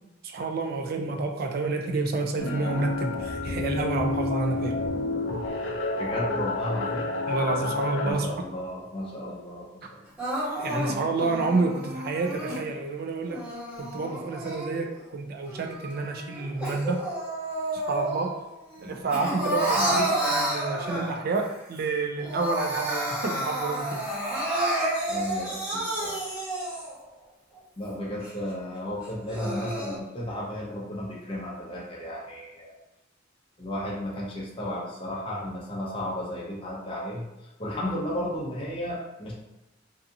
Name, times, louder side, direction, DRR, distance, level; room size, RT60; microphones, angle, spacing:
voice 1, 0.2-4.7 7.3-8.3 10.6-13.4 13.8-17.1 17.7-18.4 18.8-24.0, right 3 dB, 55° right, 3 dB, 0.4 m, -29 dB
sound 1, 2.4-8.1, left 3 dB, 75° left, 0.4 m, -30 dB
voice 2, 6.0-7.1 8.0-10.3 18.8-19.0 19.8-20.0 25.1-26.2 27.8-32.7 33.6-39.3, left 1 dB, 30° left, -5 dB, 0.6 m, -34 dB
Crying sobbing, 10.2-12.6 13.2-15.0 15.5-18.4 18.7-21.4 21.8-21.9 22.2-27.0 27.5-27.6 28.2-28.3 29.0-30.0, right 1 dB, 5° right, 1.0 m, -30 dB
2.7 x 2.4 x 2.6 m, 0.98 s
head